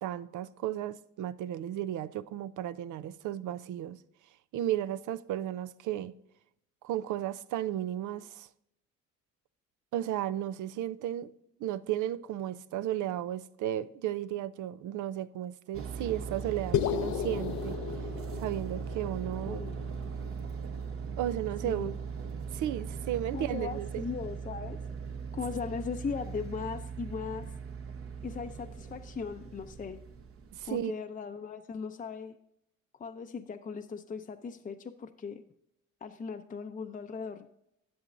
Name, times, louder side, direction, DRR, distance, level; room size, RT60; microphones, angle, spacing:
voice 1, 0.0-4.0 4.5-6.1 6.8-8.5 9.9-11.3 11.6-17.8 18.4-19.7 21.2-21.9 22.5-24.0 30.6-30.9, right 12 dB, 80° right, 0.5 m, -34 dB
sound 1, 15.7-30.8, right 6 dB, 45° right, 0.9 m, -39 dB
sound 2, 16.7-21.1, left 10 dB, 70° left, 0.6 m, -35 dB
voice 2, 19.5-19.8 21.6-21.9 23.3-24.8 25.3-27.5 28.2-30.0 30.7-32.4 32.9-35.4 36.0-37.5, left 5 dB, 30° left, 0.6 m, -38 dB
11.0 x 7.1 x 2.6 m
cardioid pair, 90°, 30 cm